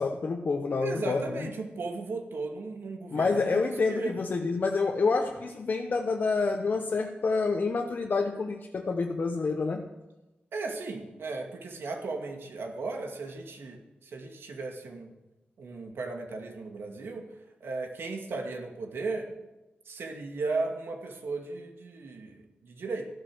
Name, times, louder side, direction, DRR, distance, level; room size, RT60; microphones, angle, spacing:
voice 1, 0.0-1.4 3.1-9.9, left 4 dB, 50° left, 3 dB, 1.0 m, -28 dB
voice 2, 0.8-4.1 10.5-15.1 15.6-17.3 17.6-19.3 19.9-23.1, right 3 dB, 80° right, 3 dB, 2.3 m, -36 dB
14.0 x 11.5 x 6.3 m, 1.0 s
wide cardioid pair, 110°, 4 cm